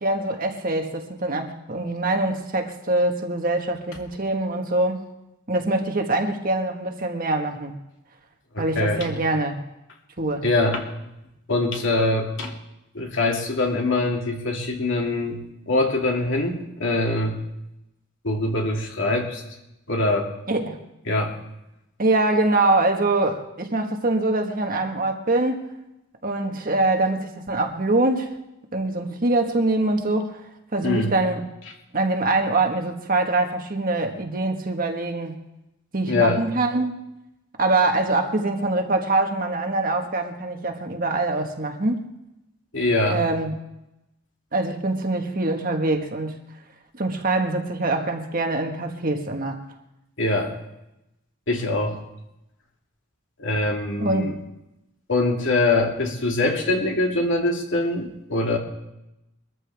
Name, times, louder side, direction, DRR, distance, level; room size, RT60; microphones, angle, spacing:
voice 1, 0.0-5.1 5.5-7.8 8.6-9.5 10.2-10.4 20.5-20.8 22.0-25.6 26.2-28.3 28.7-30.4 30.7-31.4 31.9-35.4 35.9-37.0 37.6-42.0 43.1-43.5 44.5-46.4 46.9-49.6 54.0-54.3, right 2 dB, 40° right, 4 dB, 1.5 m, -24 dB
voice 2, 8.5-9.1 10.4-10.8 11.5-12.5 12.9-15.4 15.7-17.4 18.2-19.4 19.9-20.3 21.1-21.4 30.8-31.1 36.1-36.4 42.7-43.2 50.2-50.5 51.5-52.0 53.4-54.3 55.1-58.6, left 2 dB, 60° left, 1 dB, 2.5 m, -23 dB
22.5 x 13.5 x 3.5 m, 0.89 s
head